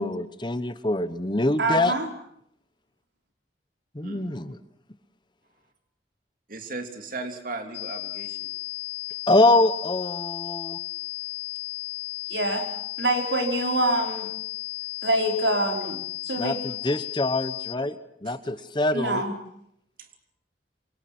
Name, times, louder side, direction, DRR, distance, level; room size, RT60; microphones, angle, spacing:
voice 1, 0.0-1.9 3.9-4.6 9.3-10.8 16.4-17.9 18.2-19.2, left 2 dB, 25° left, 12 dB, 1.1 m, -24 dB
voice 2, 1.6-2.1 12.3-12.6 13.0-14.3 15.0-16.0 16.3-16.6 18.9-19.3, right 1 dB, 80° right, 3 dB, 5.1 m, -25 dB
voice 3, 4.0-4.4 6.5-8.5 12.2-12.3 18.2-18.4 20.0-20.1, right 3 dB, 50° right, 6 dB, 3.0 m, -37 dB
sound 1, 7.7-17.7, left 19 dB, 65° left, 3.2 m, -34 dB
27.5 x 25.0 x 6.1 m, 0.71 s
head